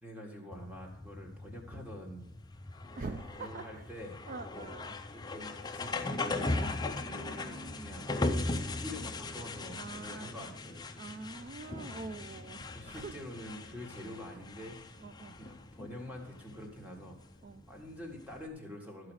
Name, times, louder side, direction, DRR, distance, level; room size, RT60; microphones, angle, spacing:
voice 1, 0.0-2.3 3.3-4.1 5.1-8.1 8.8-10.9 12.7-14.8 15.4-17.2 17.7-19.1, left 1 dB, 5° right, 0 dB, 1.8 m, -46 dB
sound 1, 0.5-18.5, left 2 dB, 20° left, 0.5 m, -39 dB
voice 2, 3.0-3.9 4.3-5.0 7.0-8.0 9.7-10.4 11.0-13.2 15.0-15.4 17.4-17.6, right 3 dB, 35° right, 9 dB, 0.3 m, -45 dB
12.5 x 4.9 x 6.3 m, 0.90 s
head